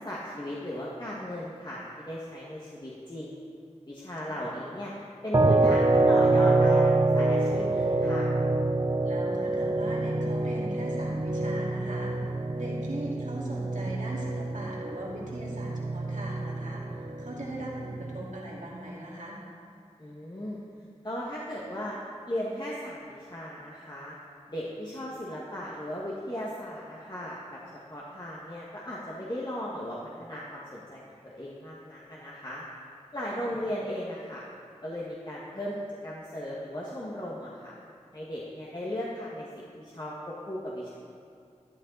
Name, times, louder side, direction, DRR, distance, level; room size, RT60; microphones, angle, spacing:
voice 1, 0.0-3.4 3.9-4.9 5.2-8.3 20.0-20.6 21.0-22.0 22.3-24.1 24.5-27.6 27.9-32.6 33.1-34.4 34.8-35.7 36.0-37.7 38.1-41.0, equal, 35° left, -6 dB, 1.7 m, -37 dB
sound 1, 5.3-18.3, right 2 dB, 35° right, 0.6 m, -26 dB
voice 2, 9.0-19.4 33.4-33.5, right 1 dB, 85° right, -5 dB, 2.5 m, -39 dB
12.5 x 12.0 x 4.0 m, 2.3 s
wide cardioid pair, 40°, 12 cm